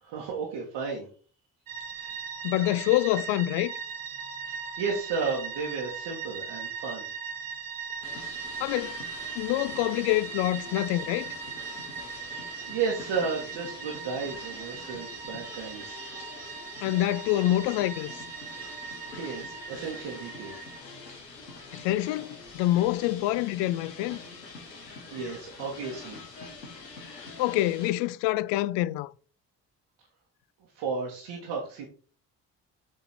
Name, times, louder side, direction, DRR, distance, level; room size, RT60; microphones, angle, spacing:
voice 1, 0.0-1.1 4.5-7.1 12.6-16.1 19.1-20.6 25.1-26.2 30.8-31.9, right 5 dB, 60° right, 2.0 m, -33 dB
sound 1, 1.7-20.8, right 6 dB, 45° right, 1.7 m, -39 dB
voice 2, 2.4-3.7 8.6-9.0 9.3-11.3 16.8-18.1 21.7-24.2 27.0-29.1, left 16 dB, 60° left, 0.5 m, -26 dB
sound 2, 8.0-27.9, left 3 dB, 85° left, 1.3 m, -45 dB
7.6 x 4.5 x 4.4 m
figure-of-eight pair, 45°, 48 cm